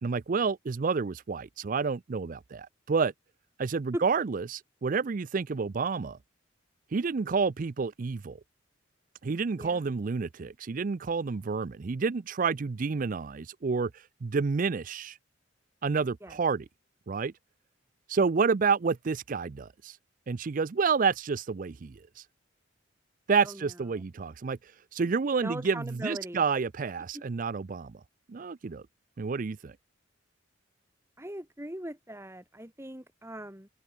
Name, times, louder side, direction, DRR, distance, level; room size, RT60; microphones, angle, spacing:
voice 1, 0.0-3.1 3.6-6.2 6.9-8.4 9.2-15.2 15.8-16.6 17.1-17.3 18.1-20.0 20.3-22.2 23.3-24.6 24.9-28.0 28.3-28.8 29.2-29.7, right 5 dB, 45° right, 0.4 m, -29 dB
voice 2, 25.4-26.4 27.1-27.2 31.2-33.7, right 1 dB, 15° right, 3.5 m, -39 dB
open air
head